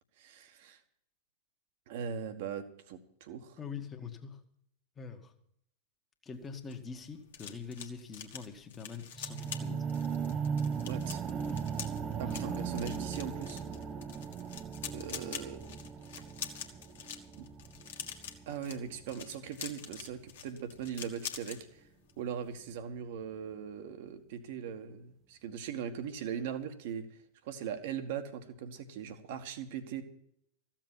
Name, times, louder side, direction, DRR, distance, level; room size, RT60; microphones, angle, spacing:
voice 1, 0.2-0.8 1.9-3.6 10.8-11.2 12.1-13.6 14.9-15.7 17.4-17.5 18.5-21.8 22.2-27.2 27.4-30.0, right 8 dB, 50° right, 9 dB, 1.5 m, -40 dB
voice 2, 3.6-4.4 5.0-5.3 6.2-9.9 12.2-12.8, left 5 dB, 20° left, 5 dB, 1.7 m, -44 dB
sound 1, 6.4-21.6 21.9-22.2 22.5-22.7, left 8 dB, 60° left, 1.6 m, -45 dB
sound 2, 9.2-19.3 19.9-20.0, right 6 dB, 25° right, 0.8 m, -38 dB
14.5 x 7.5 x 9.1 m, 0.71 s
figure-of-eight pair, 90°, 0 cm